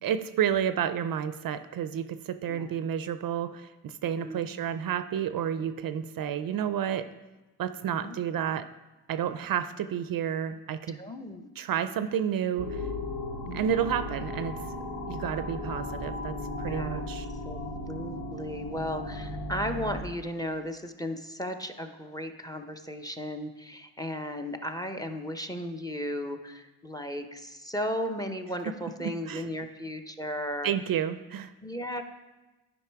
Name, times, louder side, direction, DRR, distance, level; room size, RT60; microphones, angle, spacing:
voice 1, 0.0-7.1 7.6-8.7 9.1-11.0 11.6-12.8 13.5-14.5 15.1-17.3 28.7-29.4 30.6-31.5, right 9 dB, 55° right, 12 dB, 0.5 m, -30 dB
voice 2, 2.5-2.9 4.0-4.5 7.9-8.2 10.9-11.5 13.5-13.7 16.7-17.0 17.4-30.7 31.6-32.0, equal, 10° left, 6 dB, 0.7 m, -35 dB
sound 1, 12.6-20.0, left 1 dB, 80° left, 2.4 m, -36 dB
9.6 x 5.3 x 4.6 m, 1.1 s
cardioid pair, 80°, 42 cm